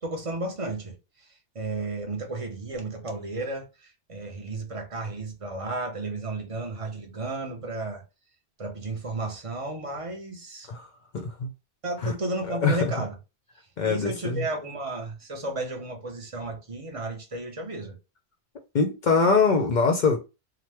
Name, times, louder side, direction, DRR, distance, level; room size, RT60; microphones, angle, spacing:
voice 1, 0.0-8.0 8.6-10.7 11.8-13.1 13.8-18.0, right 2 dB, 35° right, 0.6 m, -33 dB
voice 2, 10.7-11.5 12.0-12.1 12.5-12.9 13.8-14.4 18.7-20.2, left 4 dB, 55° left, 0.5 m, -23 dB
2.9 x 2.0 x 3.3 m
omnidirectional pair, 1.2 m